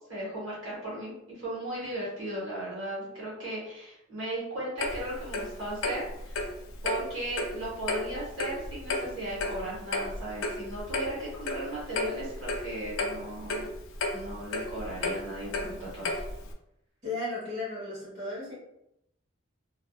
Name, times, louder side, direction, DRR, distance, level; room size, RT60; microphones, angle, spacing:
voice 1, 0.1-6.5 6.8-13.6 14.1-16.2, right 1 dB, 65° right, -6 dB, 1.1 m, -36 dB
Clock, 4.8-16.5, left 2 dB, 65° left, 0.4 m, -34 dB
voice 2, 17.0-18.5, left 2 dB, 35° right, -9 dB, 1.1 m, -35 dB
2.6 x 2.3 x 2.2 m, 0.80 s
head